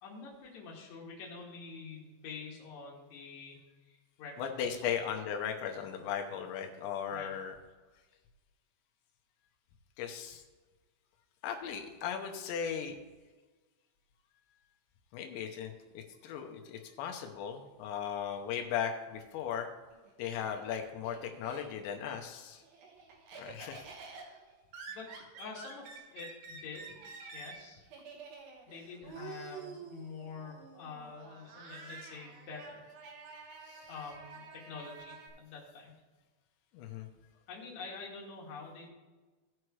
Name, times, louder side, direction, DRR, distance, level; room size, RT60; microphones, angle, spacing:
voice 1, 0.0-4.8 7.1-7.3 24.9-26.9 27.3-27.8 28.7-32.9 33.9-35.9 37.5-38.9, left 5 dB, 50° left, -3 dB, 2.8 m, -47 dB
voice 2, 4.4-7.5 10.0-10.4 11.4-13.0 15.1-19.7 20.2-22.6 23.4-23.8 33.7-33.9 36.7-37.1, left 8 dB, 90° left, 3 dB, 3.2 m, -37 dB
Laughter, 19.9-22.0 22.4-35.3, right 5 dB, 65° right, 2.7 m, -49 dB
17.0 x 6.2 x 3.2 m, 1.3 s
omnidirectional pair, 5.0 m